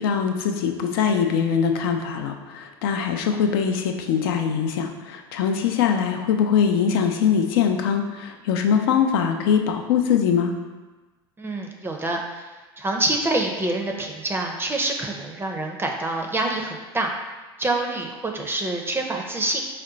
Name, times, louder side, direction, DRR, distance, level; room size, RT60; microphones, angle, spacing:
voice 1, 0.0-10.5, left 7 dB, 65° left, 5 dB, 0.5 m, -22 dB
voice 2, 11.4-12.5 12.8-17.1 17.6-19.6, right 2 dB, 15° right, 2 dB, 0.5 m, -26 dB
4.8 x 2.2 x 3.8 m, 1.2 s
hypercardioid pair, 75°, 13 cm